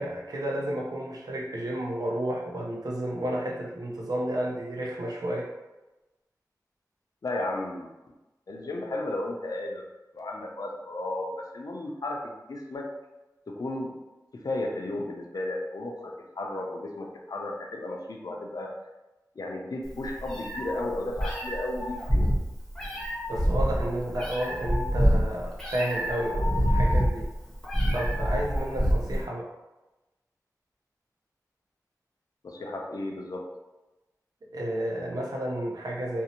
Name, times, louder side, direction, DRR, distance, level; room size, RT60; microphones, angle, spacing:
voice 1, 0.0-5.5 23.3-27.3 27.9-29.5 34.5-36.2, right 1 dB, 70° right, -2 dB, 0.5 m, -31 dB
voice 2, 7.2-7.9 8.5-9.8 10.1-12.9 13.5-13.9 14.4-18.7 19.4-22.3 32.4-33.4, left 2 dB, 65° left, 1 dB, 0.4 m, -34 dB
Meow, 19.9-29.2, equal, 5° left, 0.7 m, -26 dB
2.6 x 2.0 x 2.8 m, 1.0 s
wide cardioid pair, 70°, 7 cm